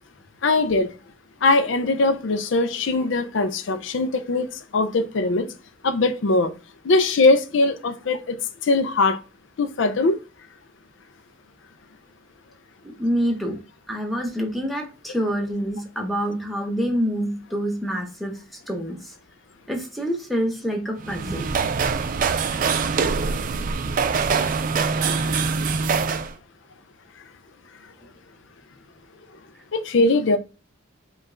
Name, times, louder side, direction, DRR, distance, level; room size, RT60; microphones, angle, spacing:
voice 1, 0.4-0.9 1.4-5.5 5.8-6.5 6.8-8.4 8.6-9.2 9.6-10.2 29.7-30.4, left 3 dB, 65° left, 0.5 m, -21 dB
voice 2, 12.8-13.6 13.9-19.1 19.7-21.5, equal, ahead, 0.8 m, -27 dB
sound 1, 21.0-26.3, right 5 dB, 40° right, 0.3 m, -23 dB
5.1 x 2.4 x 3.7 m
head